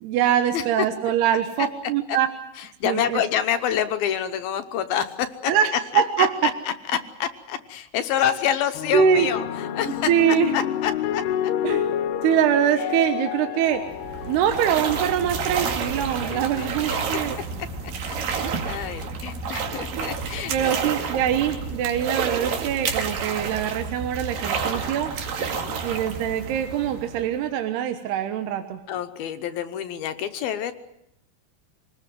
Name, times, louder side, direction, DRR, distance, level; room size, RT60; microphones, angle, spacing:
voice 1, 0.0-2.3 2.8-3.2 5.5-6.3 8.9-9.3 10.1-10.5 11.6-11.9 12.2-13.9 14.3-17.4 18.4-18.7 20.5-25.1 25.8-28.8, right 9 dB, 80° right, 7 dB, 3.3 m, -23 dB
voice 2, 0.5-0.9 1.6-1.7 2.1-2.2 2.6-5.5 5.9-11.5 12.8-12.9 14.9-15.1 16.3-17.2 18.0-21.0 23.5-23.8 25.4-25.8 28.9-30.7, left 9 dB, 75° left, 10 dB, 2.7 m, -28 dB
sound 1, 8.7-17.3 18.2-18.6, left 10 dB, 90° left, 3.2 m, -30 dB
sound 2, 13.7-27.5, right 6 dB, 65° right, 3.6 m, -30 dB
sound 3, 15.1-21.8, left 1 dB, 5° right, 1.5 m, -39 dB
26.5 x 19.5 x 7.7 m, 0.80 s
omnidirectional pair, 4.6 m